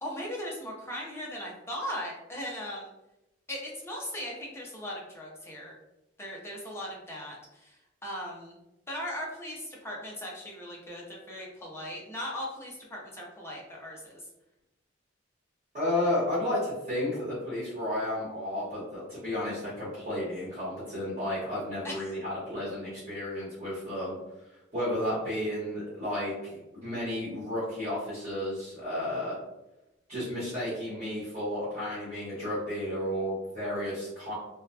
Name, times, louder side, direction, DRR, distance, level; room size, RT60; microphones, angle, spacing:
voice 1, 0.0-2.9 3.5-5.7 6.2-7.8 8.0-8.6 8.9-14.2 21.8-22.1, equal, 15° left, -3 dB, 0.5 m, -38 dB
voice 2, 15.7-24.1 24.7-29.4 30.1-34.3, left 1 dB, 35° right, -10 dB, 1.1 m, -32 dB
2.7 x 2.2 x 2.2 m, 0.94 s
head